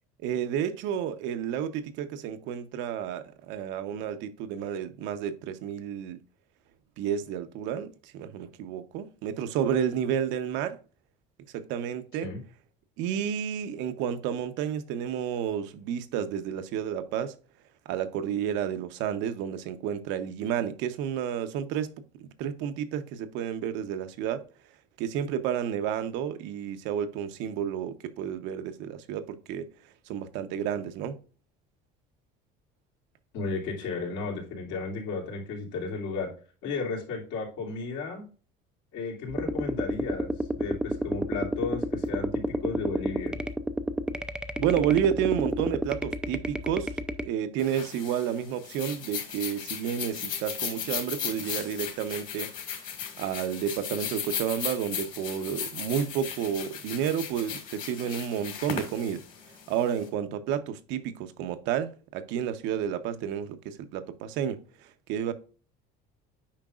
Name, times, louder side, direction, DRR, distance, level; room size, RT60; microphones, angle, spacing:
voice 1, 0.2-6.2 7.0-10.8 11.5-12.3 13.0-17.3 17.9-21.9 22.4-24.4 25.0-29.7 30.1-31.2 44.6-46.9 47.2-52.5 53.2-59.2 59.7-64.6 65.1-65.3, right 9 dB, 75° right, 0.9 m, -31 dB
voice 2, 33.3-36.3 36.6-38.3 38.9-43.4, left 4 dB, 75° left, 2.8 m, -34 dB
sound 1, 39.3-47.2, right 1 dB, 5° right, 0.4 m, -30 dB
sound 2, 47.6-60.0, left 8 dB, 45° left, 1.9 m, -36 dB
8.8 x 5.2 x 2.4 m
cardioid pair, 135°, 19 cm